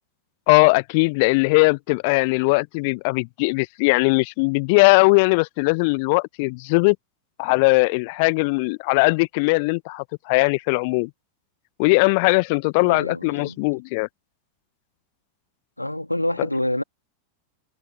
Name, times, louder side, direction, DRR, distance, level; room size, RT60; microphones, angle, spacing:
voice 1, 0.5-7.0 7.4-11.1 11.8-14.1, left 29 dB, 45° left, 0.9 m, -19 dB
voice 2, 12.8-13.6 15.8-16.8, left 1 dB, 85° left, 2.9 m, -26 dB
figure-of-eight pair, 90°, 0 cm